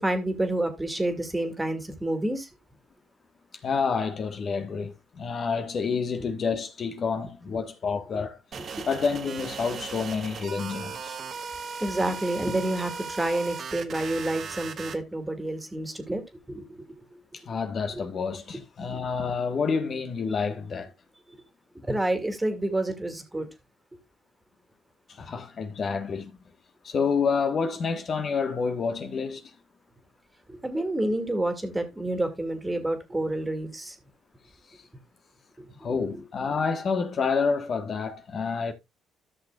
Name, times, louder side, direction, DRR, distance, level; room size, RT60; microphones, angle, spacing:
voice 1, 0.0-2.5 8.1-8.2 8.6-8.8 11.8-16.2 16.5-17.2 17.9-18.0 21.3-21.4 21.8-23.5 30.5-34.0 35.6-36.2, right 1 dB, 15° right, 2.1 m, -29 dB
voice 2, 3.6-8.4 8.9-11.2 17.3-20.9 25.1-26.3 26.8-29.5 35.8-38.7, left 5 dB, 45° left, 1.3 m, -28 dB
sound 1, 8.5-15.0, right 5 dB, 50° right, 1.3 m, -37 dB
13.5 x 6.3 x 2.3 m
cardioid pair, 85°, 0 cm